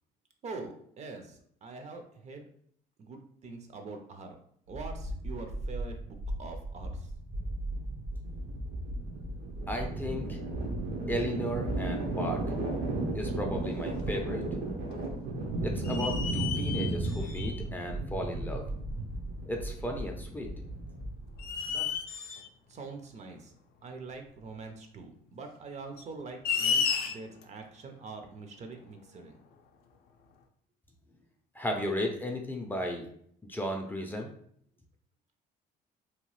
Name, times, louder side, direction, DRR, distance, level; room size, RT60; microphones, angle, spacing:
voice 1, 0.4-2.5 3.0-4.3 4.7-7.1 21.7-21.9 22.7-23.5 23.8-29.4, right 3 dB, 40° right, 5 dB, 0.5 m, -44 dB
sound 1, 4.7-21.7, right 2 dB, 85° right, 0.8 m, -34 dB
voice 2, 9.7-10.4 11.1-12.4 13.1-14.4 15.6-18.6 19.5-20.5 31.6-33.1 33.5-34.3, equal, 10° left, 1 dB, 0.4 m, -35 dB
sound 2, 13.2-13.3 13.9-14.6 14.9-15.0 15.8-17.7 18.7-18.8 20.6-20.9 21.4-22.5 24.3-24.4 25.9-27.4, left 6 dB, 70° left, 0.4 m, -32 dB
2.9 x 2.2 x 3.0 m, 0.65 s
cardioid pair, 110°, 17 cm